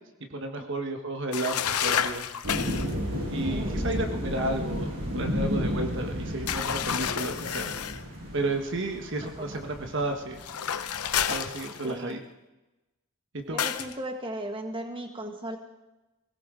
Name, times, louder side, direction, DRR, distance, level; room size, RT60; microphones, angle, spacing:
voice 1, 0.3-2.3 3.3-7.7 8.3-10.4 11.3-12.2 13.5-13.6, right 2 dB, 55° right, 4 dB, 1.4 m, -32 dB
sound 1, 1.3-2.9 6.5-8.0 10.4-12.1 13.6-13.9, left 8 dB, 85° left, 0.8 m, -30 dB
sound 2, 2.4-11.3, equal, 75° right, 7.9 m, -33 dB
voice 2, 3.3-3.8 9.4-9.6 11.8-12.2 13.5-15.6, right 1 dB, 25° right, 4 dB, 1.7 m, -37 dB
21.0 x 18.0 x 3.8 m, 1.0 s
head